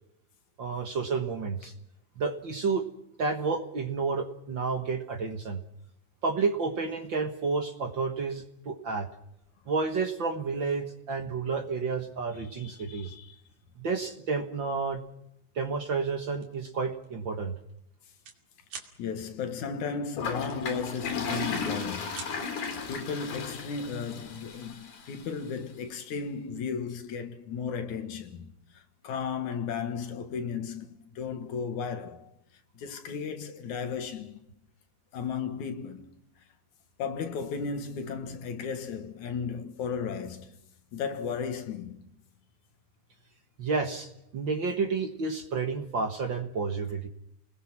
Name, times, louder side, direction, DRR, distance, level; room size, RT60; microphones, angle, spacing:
voice 1, 0.6-1.7 2.2-2.9 3.2-5.6 6.2-9.1 9.7-13.1 13.8-15.0 15.6-17.5 43.6-47.1, right 4 dB, 45° right, 1.8 m, -30 dB
voice 2, 12.4-13.4 19.0-32.3 32.8-34.4 35.1-36.1 37.0-40.5 40.9-42.0, left 6 dB, 75° left, 3.0 m, -35 dB
sound 1, 16.3-16.6 17.0-17.2 17.5-18.4 18.7-18.9 20.5-21.3 21.6-22.3, right 5 dB, 75° right, 3.8 m, -44 dB
Toilet flush, 20.2-25.2, left 4 dB, 90° left, 5.4 m, -35 dB
30.0 x 20.5 x 6.1 m
omnidirectional pair, 3.5 m